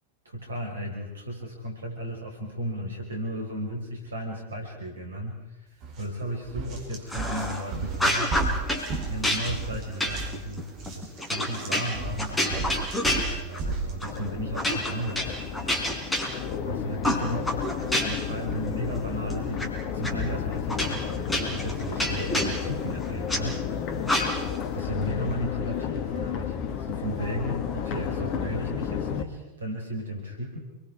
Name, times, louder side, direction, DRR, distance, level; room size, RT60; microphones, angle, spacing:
voice 1, 0.3-5.4 6.0-8.4 9.0-15.8 16.6-17.5 18.0-23.7 24.7-30.6, equal, 70° right, 1 dB, 5.5 m, -34 dB
sound 1, 5.8-6.0 6.4-14.0, right 3 dB, 40° right, 4.3 m, -34 dB
sound 2, 7.1-7.6 7.9-8.9 9.2-13.7 14.0-14.2 14.6-16.7 17.0-18.3 18.7-19.7 20.0-20.1 20.7-23.4 24.0-24.6, left 1 dB, 5° left, 4.2 m, -28 dB
Crowd, 14.1-29.2, left 8 dB, 40° left, 1.6 m, -32 dB
28.5 x 22.0 x 4.9 m, 0.94 s
figure-of-eight pair, 90°, 0 cm